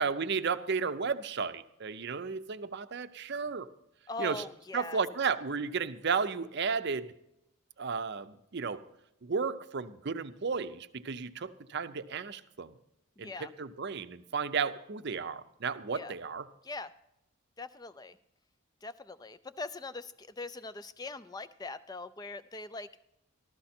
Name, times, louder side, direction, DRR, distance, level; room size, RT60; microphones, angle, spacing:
voice 1, 0.0-3.7 4.2-4.4 4.7-7.1 7.8-8.8 9.2-12.7 13.2-13.3 13.6-16.5, right 5 dB, 50° right, 12 dB, 0.6 m, -33 dB
voice 2, 4.1-5.0 13.2-13.5 15.9-16.1 16.6-16.9 17.6-18.2 18.8-23.0, left 3 dB, 15° left, 14 dB, 0.4 m, -41 dB
14.0 x 13.0 x 4.3 m, 0.83 s
head